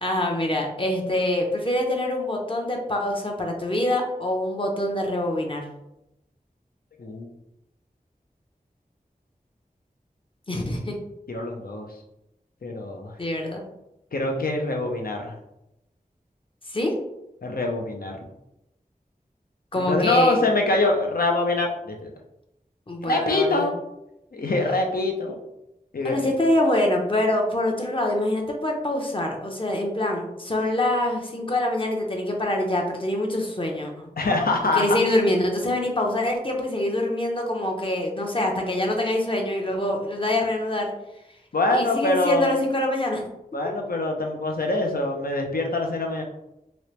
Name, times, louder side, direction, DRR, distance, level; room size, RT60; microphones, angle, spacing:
voice 1, 0.0-5.6 10.5-11.0 13.2-13.6 16.7-16.9 19.7-20.4 22.9-23.7 26.0-34.1 34.7-40.9 41.7-43.2, left 1 dB, 35° left, 1 dB, 0.8 m, -25 dB
voice 2, 11.3-11.9 12.6-13.1 14.1-15.4 17.4-18.2 19.8-22.1 23.0-23.7 24.3-25.4 25.9-26.3 34.2-34.9 41.5-42.5 43.5-46.2, left 2 dB, 75° left, 2 dB, 0.6 m, -24 dB
3.1 x 2.9 x 3.1 m, 0.86 s
wide cardioid pair, 65°, 15 cm